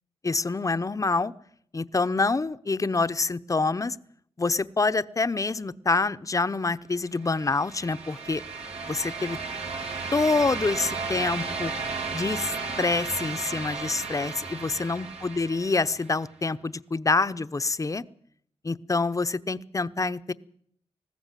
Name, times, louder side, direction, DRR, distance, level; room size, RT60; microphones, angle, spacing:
voice 1, 0.2-1.3 1.7-4.0 4.4-8.4 8.9-9.4 10.1-11.7 12.1-18.0 18.6-20.3, left 3 dB, 30° left, 13 dB, 0.8 m, -26 dB
sound 1, 7.2-16.1, right 4 dB, 75° right, 2.9 m, -34 dB
20.0 x 14.5 x 9.1 m, 0.66 s
cardioid pair, 70°, 11 cm